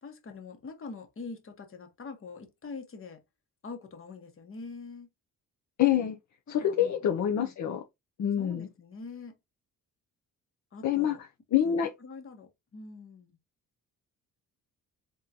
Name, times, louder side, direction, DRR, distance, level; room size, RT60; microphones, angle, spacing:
voice 1, 0.0-3.2 3.6-5.1 6.5-7.5 8.4-9.3 10.7-11.2 11.6-13.4, left 4 dB, 40° left, 1.2 m, -44 dB
voice 2, 5.8-6.2 6.5-7.8 8.2-8.7 10.8-11.2 11.5-11.9, left 10 dB, 55° left, 0.7 m, -26 dB
3.8 x 3.6 x 2.8 m
cardioid pair, 100°, 34 cm